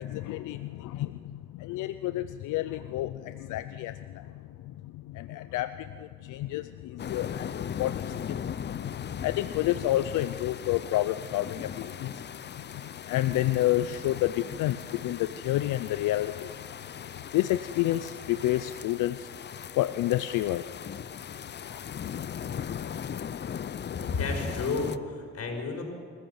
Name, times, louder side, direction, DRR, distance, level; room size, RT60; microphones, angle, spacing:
voice 1, 0.0-4.3 4.6-12.2 12.8-16.5 17.3-19.3 19.8-20.6 21.6-21.8, left 14 dB, 85° left, 12 dB, 0.6 m, -30 dB
sound 1, 7.0-25.0, left 8 dB, 35° left, 0.6 m, -39 dB
voice 2, 24.0-25.8, left 3 dB, 55° left, 2 dB, 5.7 m, -31 dB
26.5 x 14.5 x 7.2 m, 2.3 s
cardioid pair, 90°, 30 cm